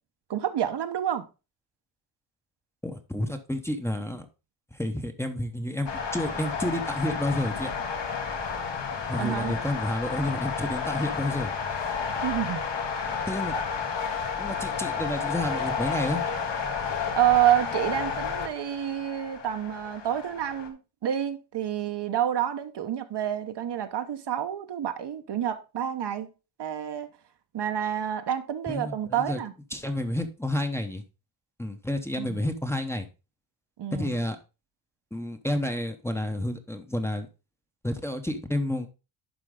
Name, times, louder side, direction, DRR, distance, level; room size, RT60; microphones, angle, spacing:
voice 1, 0.3-1.2 9.2-9.5 12.2-12.7 13.5-13.6 17.1-26.3 26.6-27.1 27.5-29.5 32.2-32.4 33.8-34.1, right 11 dB, 60° right, 1.0 m, -28 dB
voice 2, 2.8-4.2 4.7-7.7 9.1-11.5 13.3-13.5 14.4-16.3 28.7-29.4 29.7-31.0 31.6-33.1 33.9-34.4 35.1-37.3 37.8-38.9, left 1 dB, 5° left, 0.9 m, -30 dB
sound 1, 5.9-20.7, left 6 dB, 65° left, 1.7 m, -31 dB
11.5 x 4.5 x 3.7 m
wide cardioid pair, 140°, 46 cm